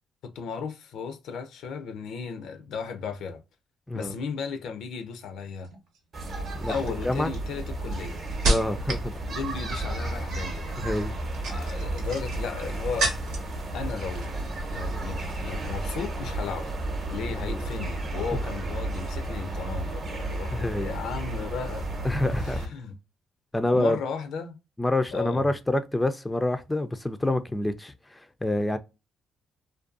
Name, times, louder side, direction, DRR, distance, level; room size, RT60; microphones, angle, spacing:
voice 1, 0.2-3.4 3.9-5.7 6.7-8.2 9.3-10.8 11.5-13.1 13.7-16.8 17.1-21.9 22.3-22.9 23.7-24.6 25.1-25.5, left 5 dB, 80° left, 0.4 m, -35 dB
sound 1, 5.6-6.0 6.7-9.1 9.4-9.9 11.1-13.6 13.9-14.5 14.8-15.1, right 2 dB, 90° right, 0.8 m, -31 dB
sound 2, 6.1-22.7, right 2 dB, 50° right, 0.7 m, -33 dB
voice 2, 8.4-9.1 10.8-11.1 17.3-17.6 20.5-20.9 22.0-22.6 23.5-24.0 24.8-28.8, left 1 dB, 10° left, 0.3 m, -27 dB
2.5 x 2.2 x 2.4 m
cardioid pair, 90°, 0 cm